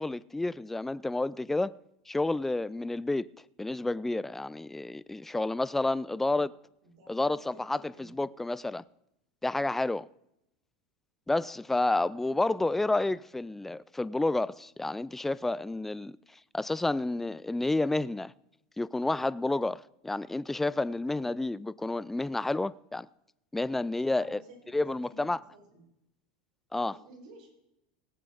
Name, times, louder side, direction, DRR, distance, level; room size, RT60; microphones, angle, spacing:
voice 1, 0.0-1.7 2.1-3.3 3.6-6.5 7.1-8.8 9.4-10.1 11.3-16.2 16.5-18.3 18.8-23.1 23.5-24.4 24.7-25.4 26.7-27.0, left 2 dB, 5° left, 0.3 m, -30 dB
voice 2, 6.8-8.3 23.8-25.8 26.9-27.5, right 2 dB, 65° right, 5.0 m, -54 dB
19.0 x 8.5 x 3.9 m
supercardioid pair, 130°, 4 cm